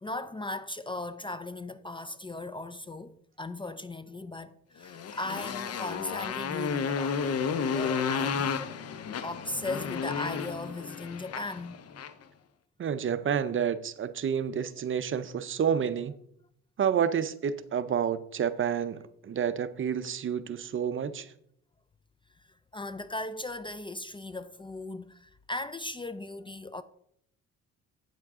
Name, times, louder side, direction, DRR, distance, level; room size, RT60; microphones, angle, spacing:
voice 1, 0.0-7.5 7.7-8.5 9.1-11.8 22.7-26.8, left 2 dB, 15° left, 0.4 m, -38 dB
Motorcycle, 4.8-12.2, left 6 dB, 55° left, 0.8 m, -32 dB
voice 2, 12.8-16.2 16.8-21.3, right 8 dB, 40° right, 0.6 m, -29 dB
9.0 x 7.3 x 3.6 m
cardioid pair, 90°, 30 cm